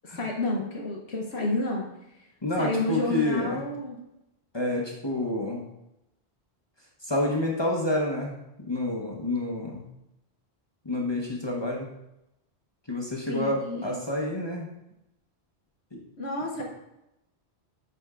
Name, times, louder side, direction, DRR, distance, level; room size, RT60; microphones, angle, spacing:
voice 1, 0.0-1.9 2.6-4.0 13.3-13.9 16.2-16.6, left 2 dB, 70° left, -1 dB, 1.2 m, -30 dB
voice 2, 2.4-3.6 4.5-5.6 7.0-9.9 10.8-11.9 12.9-14.7 15.9-16.0, left 1 dB, 25° left, -2 dB, 0.9 m, -29 dB
8.3 x 3.5 x 3.6 m, 0.87 s
omnidirectional pair, 1.1 m